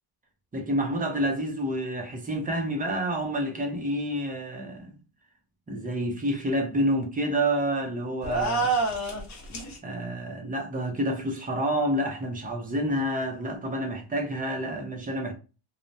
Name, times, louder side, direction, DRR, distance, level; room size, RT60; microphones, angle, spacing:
voice 1, 0.5-5.0 5.7-8.8 9.8-15.3, right 1 dB, 20° right, 0.5 m, -28 dB
sound 1, 8.2-9.8, right 3 dB, 35° left, 0.9 m, -27 dB
3.2 x 2.1 x 2.6 m
wide cardioid pair, 170°, 47 cm